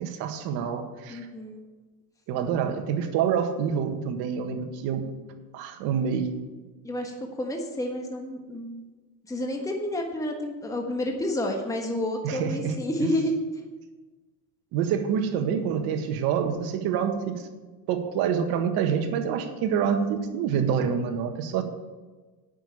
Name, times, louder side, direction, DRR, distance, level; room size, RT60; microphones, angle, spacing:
voice 1, 0.0-1.3 2.3-5.0 5.5-6.3 12.2-13.1 14.7-17.5 17.9-21.6, right 7 dB, 60° right, 5 dB, 1.7 m, -27 dB
voice 2, 1.1-1.6 6.8-8.9 9.3-13.3, left 1 dB, 10° left, 2 dB, 1.3 m, -30 dB
9.0 x 6.6 x 8.7 m, 1.3 s
supercardioid pair, 130°, 41 cm